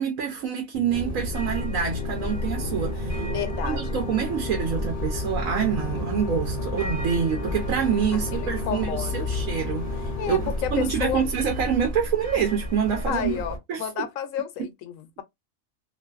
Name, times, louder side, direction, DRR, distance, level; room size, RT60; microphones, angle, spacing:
voice 1, 0.0-3.3 3.6-13.4 13.7-14.1, right 7 dB, 85° right, 1.1 m, -27 dB
sound 1, 0.7-12.1, left 6 dB, 55° left, 0.6 m, -36 dB
sound 2, 0.9-13.6, equal, 30° right, 1.2 m, -32 dB
voice 2, 3.3-4.0 8.1-9.3 10.2-11.3 13.1-15.2, left 9 dB, 80° left, 1.0 m, -31 dB
2.6 x 2.4 x 2.3 m
omnidirectional pair, 1.4 m